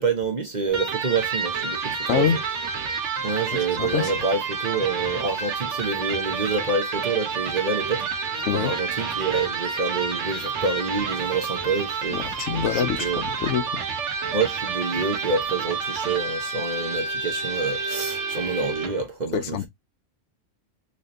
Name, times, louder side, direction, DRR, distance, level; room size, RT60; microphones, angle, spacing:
voice 1, 0.0-2.3 3.2-8.1 8.5-13.2 14.3-19.7, right 4 dB, 40° right, 0.9 m, -27 dB
Electric guitar, 0.7-19.1, right 5 dB, 70° right, 1.2 m, -29 dB
voice 2, 2.1-2.4 3.8-4.1 8.5-8.7 12.1-13.8 19.3-19.7, left 9 dB, 70° left, 0.9 m, -25 dB
4.1 x 3.0 x 2.5 m
omnidirectional pair, 1.3 m